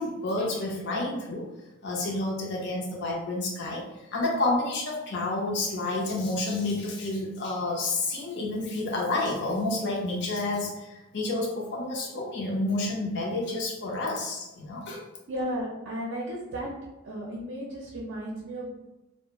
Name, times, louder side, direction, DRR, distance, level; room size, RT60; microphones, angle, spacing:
voice 1, 0.0-1.4 1.8-3.8 4.1-15.0, left 2 dB, 55° left, -3 dB, 0.5 m, -29 dB
voice 2, 15.3-16.7 17.0-18.7, equal, 60° right, -3 dB, 0.5 m, -34 dB
2.4 x 2.1 x 2.9 m, 1.0 s
head